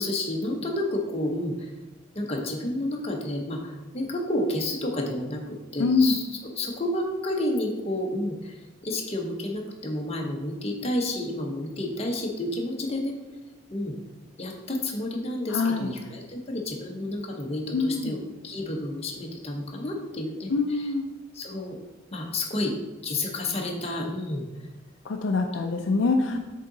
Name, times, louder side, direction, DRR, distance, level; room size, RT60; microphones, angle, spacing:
voice 1, 0.0-1.7 2.1-13.2 13.7-14.0 14.4-20.9 21.3-21.8 22.1-22.7 23.0-24.5 25.6-25.7 26.3-26.4, left 1 dB, 30° left, 1 dB, 0.9 m, -30 dB
voice 2, 5.8-6.2 15.5-15.9 17.7-18.2 20.5-21.0 25.0-26.4, left 3 dB, 70° left, 4 dB, 0.4 m, -24 dB
6.6 x 3.7 x 3.9 m, 1.1 s
head